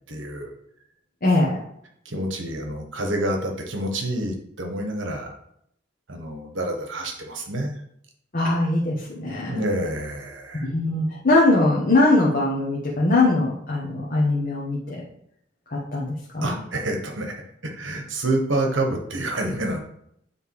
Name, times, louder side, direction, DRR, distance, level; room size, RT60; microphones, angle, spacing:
voice 1, 0.1-0.5 2.0-5.3 6.1-7.8 9.5-10.7 16.4-19.8, right 1 dB, 80° right, 3 dB, 1.4 m, -28 dB
voice 2, 1.2-1.6 8.3-9.6 10.6-14.9 15.7-16.6, left 2 dB, 45° left, -5 dB, 1.3 m, -21 dB
9.1 x 3.5 x 4.8 m, 0.73 s
head